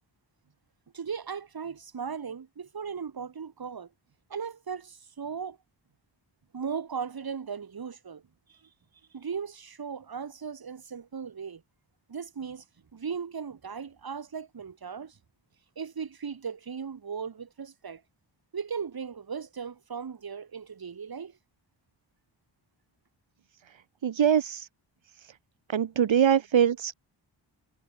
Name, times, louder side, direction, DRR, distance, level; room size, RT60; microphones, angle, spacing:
voice 1, 0.9-3.9 4.3-5.6 6.5-8.2 8.5-8.6 9.1-11.6 12.1-12.6 12.9-15.2 15.8-18.0 18.5-21.4, right 6 dB, 50° right, 7.2 m, -37 dB
voice 2, 24.0-24.7 25.7-26.9, right 8 dB, 75° right, 3.2 m, -23 dB
wide cardioid pair, 180°, 46 cm